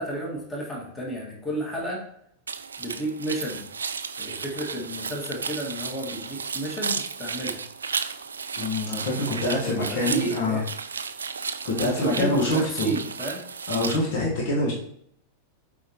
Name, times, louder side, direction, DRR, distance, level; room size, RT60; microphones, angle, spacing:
voice 1, 0.0-2.1 2.8-3.7 4.2-7.6 9.3-10.7 11.8-13.4, right 1 dB, 15° left, -2 dB, 2.0 m, -32 dB
sound 1, 2.5-14.0, right 5 dB, 70° right, 0.4 m, -33 dB
voice 2, 8.6-10.6 11.6-12.9 13.7-14.7, left 1 dB, 50° left, -2 dB, 1.5 m, -25 dB
7.9 x 4.3 x 3.0 m, 0.69 s
figure-of-eight pair, 90°, 0 cm